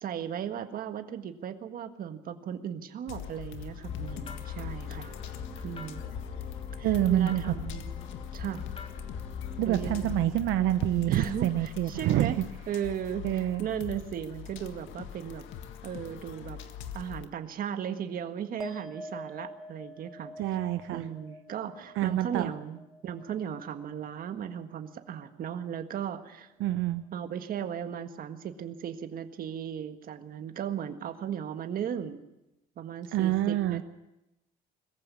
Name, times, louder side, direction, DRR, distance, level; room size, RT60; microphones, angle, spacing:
voice 1, 0.0-5.1 5.6-6.0 6.8-8.0 8.3-8.7 9.6-10.1 11.1-12.4 12.7-15.5 15.8-16.6 16.9-20.3 20.9-26.5 27.1-32.2 32.8-33.8, right 9 dB, 45° right, 8 dB, 1.6 m, -36 dB
sound 1, 3.1-17.3, left 8 dB, 70° left, 1.8 m, -43 dB
sound 2, 3.8-10.3, left 7 dB, 30° left, 3.5 m, -40 dB
voice 2, 6.8-7.4 9.6-12.3 13.2-13.7 20.4-21.0 21.9-22.5 26.6-27.0 33.1-33.8, right 13 dB, 70° right, 10 dB, 0.9 m, -27 dB
sound 3, 18.6-25.3 25.6-26.2, left 1 dB, ahead, 1.8 m, -47 dB
21.5 x 15.0 x 9.8 m, 0.92 s
cardioid pair, 150°, 20 cm